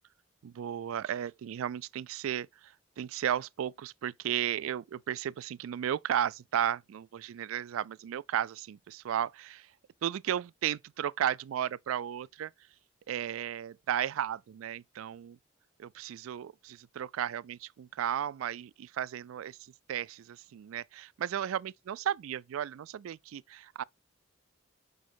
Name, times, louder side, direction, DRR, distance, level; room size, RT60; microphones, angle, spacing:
voice 1, 0.4-9.7 10.0-12.5 13.1-15.4 15.8-23.8, right 10 dB, 90° right, 0.3 m, -34 dB
6.2 x 5.4 x 4.5 m
head